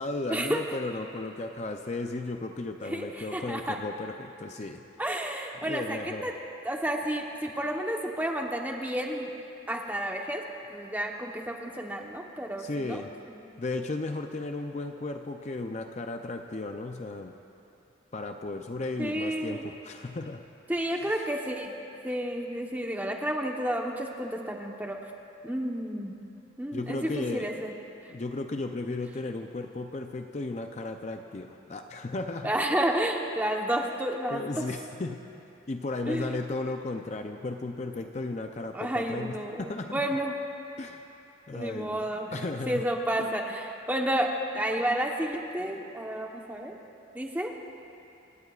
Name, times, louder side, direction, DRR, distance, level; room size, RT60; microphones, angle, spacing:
voice 1, 0.0-4.8 5.6-6.3 12.6-13.1 13.6-17.3 18.1-20.4 21.1-21.2 26.7-27.5 28.1-32.5 34.3-35.2 35.7-40.2 40.8-41.0 41.5-42.9 43.2-43.3, left 2 dB, 35° left, 5 dB, 0.5 m, -35 dB
voice 2, 2.9-3.8 5.0-6.3 6.6-9.3 9.7-10.4 10.7-13.0 13.5-13.6 19.0-19.6 20.7-21.7 22.0-25.0 25.4-26.2 26.6-27.7 32.4-34.7 36.0-36.3 38.7-40.3 41.5-42.4 42.7-46.8 47.1-47.5, right 1 dB, 10° right, 1 dB, 1.0 m, -31 dB
28.0 x 16.5 x 2.4 m, 2.8 s
head